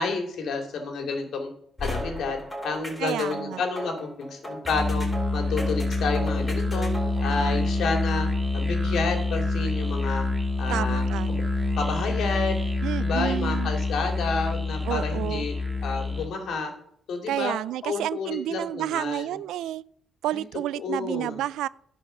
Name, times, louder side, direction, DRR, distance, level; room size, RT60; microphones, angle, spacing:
voice 1, 0.0-1.5 1.8-5.1 5.3-6.9 7.2-8.3 8.5-10.3 10.6-11.4 11.7-12.6 13.0-15.5 15.8-16.7 17.1-17.5 17.8-19.4 20.3-20.4 20.7-21.4, left 4 dB, 70° left, 2.8 m, -30 dB
sound 1, 1.8-7.2, left 1 dB, 15° left, 4.5 m, -36 dB
voice 2, 3.0-3.6 10.7-11.3 12.8-13.7 14.9-15.5 17.3-19.8 20.2-21.7, right 13 dB, 85° right, 0.3 m, -30 dB
Musical instrument, 4.6-16.4, left 2 dB, 10° right, 2.0 m, -26 dB
11.0 x 5.5 x 6.6 m
cardioid pair, 90°, 0 cm